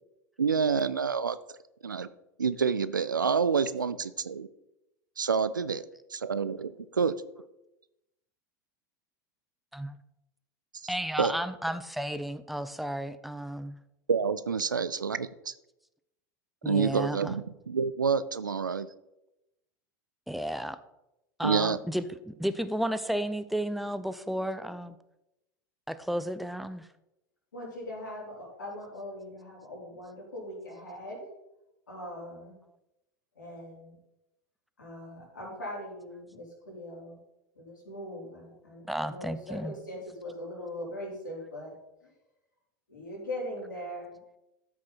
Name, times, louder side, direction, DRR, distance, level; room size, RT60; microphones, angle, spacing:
voice 1, 0.4-1.4 1.8-2.1 2.4-4.5 5.2-5.8 6.1-6.7 7.0-7.1 11.2-11.3 14.1-15.5 16.7-18.9 21.4-21.8, right 6 dB, 85° right, 15 dB, 0.5 m, -27 dB
voice 2, 10.9-13.8 16.6-17.3 20.3-20.8 21.4-25.0 25.9-26.9 38.9-39.7, right 1 dB, ahead, 12 dB, 0.6 m, -33 dB
voice 3, 27.5-31.3 31.9-32.5 33.4-33.9 34.8-37.2 37.6-41.7 42.9-44.2, left 1 dB, 75° left, -3 dB, 4.0 m, -41 dB
13.0 x 6.2 x 4.2 m, 0.91 s
figure-of-eight pair, 85°, 10 cm